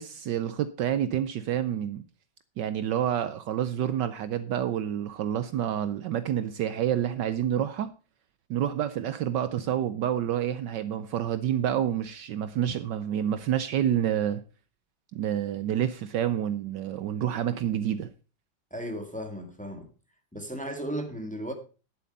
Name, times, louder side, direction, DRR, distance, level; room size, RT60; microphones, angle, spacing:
voice 1, 0.0-2.0 2.6-7.9 8.5-14.4 15.1-18.1, right 10 dB, 70° right, 1.2 m, -28 dB
voice 2, 18.7-19.9 20.3-21.5, right 1 dB, 5° left, 1.8 m, -35 dB
11.0 x 7.9 x 5.3 m
omnidirectional pair, 2.1 m